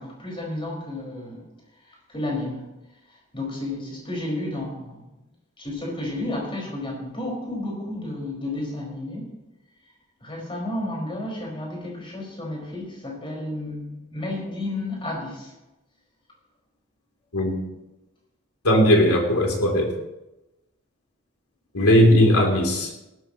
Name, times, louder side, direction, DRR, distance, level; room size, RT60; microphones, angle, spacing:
voice 1, 0.0-1.5 2.1-2.6 3.3-5.0 5.6-9.3 10.2-15.5, left 1 dB, 25° left, -2 dB, 5.0 m, -32 dB
voice 2, 18.6-19.9 21.7-22.9, equal, 85° left, 1 dB, 3.0 m, -18 dB
18.5 x 13.0 x 3.0 m, 0.97 s
head